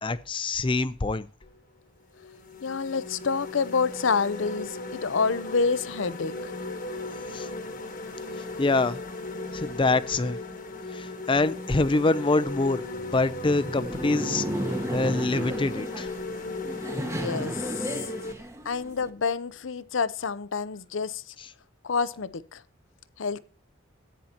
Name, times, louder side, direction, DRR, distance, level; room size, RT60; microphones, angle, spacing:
voice 1, 0.0-1.3 7.3-7.5 8.6-9.0 9.5-10.4 10.9-12.9 13.1-14.5 14.9-16.1, left 3 dB, 25° left, 0.5 m, -25 dB
sound 1, 1.4-1.6 2.2-18.3, left 2 dB, 45° left, 1.2 m, -37 dB
voice 2, 2.6-6.3 17.0-18.1 18.6-21.3 21.8-22.6 23.2-23.4, left 5 dB, 70° left, 0.6 m, -28 dB
Laughter, 12.8-19.1, right 1 dB, 15° right, 1.0 m, -34 dB
14.5 x 9.1 x 2.9 m
head